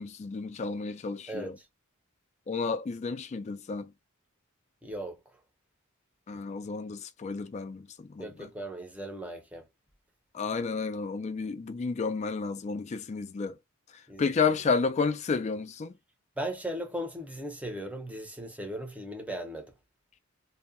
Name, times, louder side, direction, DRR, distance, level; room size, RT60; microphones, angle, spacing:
voice 1, 0.0-1.6 2.5-3.9 6.3-8.5 10.3-13.6 14.2-15.9, left 4 dB, 35° left, 0.3 m, -31 dB
voice 2, 1.3-1.7 4.8-5.2 8.2-9.6 14.1-14.2 16.4-19.7, right 1 dB, 5° right, 0.6 m, -37 dB
2.7 x 2.1 x 2.4 m
head